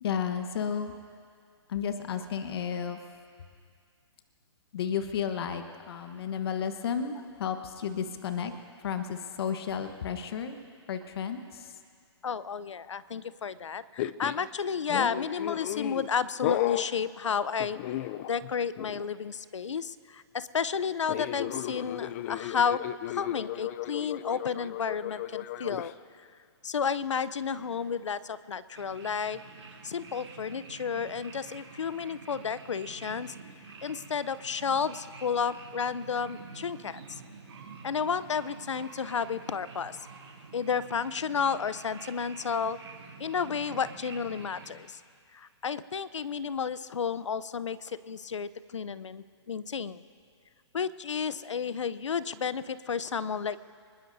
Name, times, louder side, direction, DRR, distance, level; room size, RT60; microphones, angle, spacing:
voice 1, 0.0-0.9 1.7-3.0 4.7-8.5 8.8-10.6 10.9-11.7 14.9-15.1, left 7 dB, 60° left, 7 dB, 1.2 m, -32 dB
voice 2, 12.2-18.0 18.3-22.8 23.1-25.9 26.2-26.3 26.6-29.4 29.8-33.3 33.8-37.2 37.8-40.1 40.5-42.8 43.2-45.0 45.3-50.0 50.7-53.6, left 6 dB, 90° left, 16 dB, 0.6 m, -32 dB
sound 1, 14.0-14.5 14.9-16.1 16.4-16.9 17.6-18.5 18.8-19.0 21.1-25.9, left 13 dB, 35° left, 0.4 m, -34 dB
sound 2, 28.7-44.7, right 4 dB, 80° right, 3.2 m, -48 dB
25.0 x 20.5 x 2.7 m, 2.2 s
hypercardioid pair, 140°, 15 cm